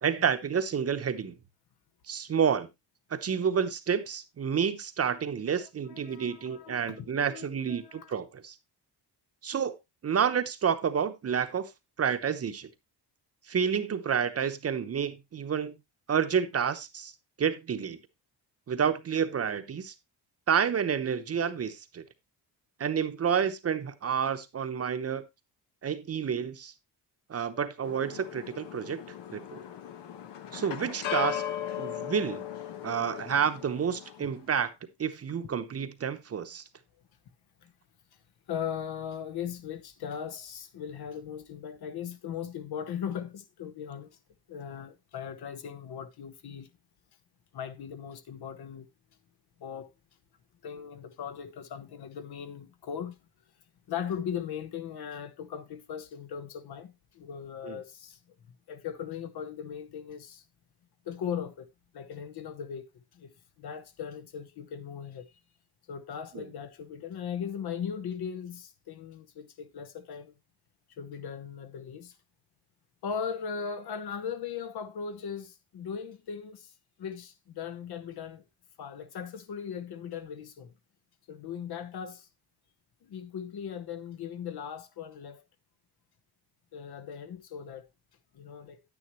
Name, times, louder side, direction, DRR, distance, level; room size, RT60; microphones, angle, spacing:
voice 1, 0.0-1.3 2.1-2.7 3.1-8.5 9.4-9.7 10.0-11.7 12.0-12.7 13.5-15.7 16.1-17.1 17.4-18.0 18.7-19.9 20.5-22.0 22.8-25.2 25.8-26.7 27.3-29.0 29.3-29.6 30.5-31.4 31.8-32.4 32.8-34.7 35.0-36.6 57.6-57.8 66.3-66.4, right 7 dB, 35° right, 0.9 m, -29 dB
voice 2, 5.9-8.1 37.6-37.7 38.5-44.2 44.5-46.7 47.5-48.9 49.6-49.9 50.6-53.1 53.9-58.2 58.5-60.4 61.0-61.7 61.9-65.3 65.9-70.3 70.9-72.2 73.0-76.7 77.0-78.4 78.8-80.7 81.3-82.3 83.0-85.5 86.7-87.9 88.3-88.8, left 7 dB, 65° left, 1.1 m, -38 dB
sound 1, 27.8-34.4, left 10 dB, 85° left, 1.3 m, -38 dB
9.5 x 9.5 x 3.0 m
cardioid pair, 160°, 41 cm